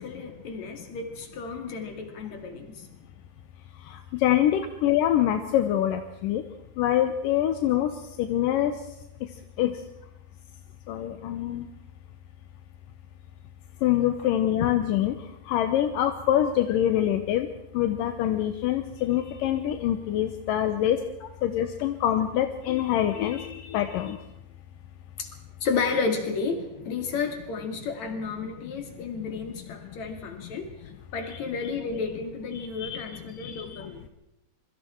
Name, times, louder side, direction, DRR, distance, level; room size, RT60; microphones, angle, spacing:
voice 1, 0.0-2.9 21.2-21.3 25.2-25.3 25.6-30.7 31.1-34.0, left 4 dB, 45° left, 5 dB, 3.4 m, -32 dB
voice 2, 4.2-6.4 6.8-7.9 8.2-8.7 9.6-9.7 10.9-11.7 13.8-15.1 15.5-17.5 17.7-21.0 21.4-24.2 32.5-33.0 33.4-33.8, left 11 dB, 70° left, 8 dB, 2.2 m, -25 dB
26.0 x 23.0 x 4.5 m, 0.89 s
omnidirectional pair, 4.7 m